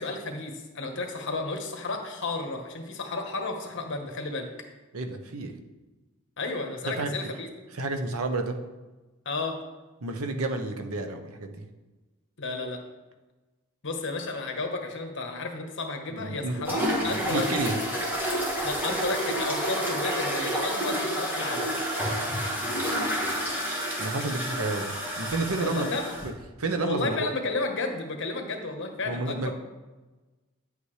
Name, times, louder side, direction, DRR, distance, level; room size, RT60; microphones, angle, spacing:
voice 1, 0.0-4.5 6.4-7.5 9.2-9.6 12.4-12.8 13.8-17.4 18.6-21.7 25.6-26.1 26.8-29.5, left 3 dB, 60° left, 3 dB, 1.3 m, -32 dB
voice 2, 4.9-5.5 6.8-7.1 7.7-8.6 10.0-11.6 16.1-16.7 17.0-17.8 24.0-25.9 26.2-26.3 26.6-27.3 29.0-29.5, right 3 dB, 80° right, 6 dB, 0.9 m, -30 dB
sound 1, 16.6-26.3, equal, 10° right, 1.7 m, -29 dB
9.7 x 8.2 x 3.3 m, 1.2 s
head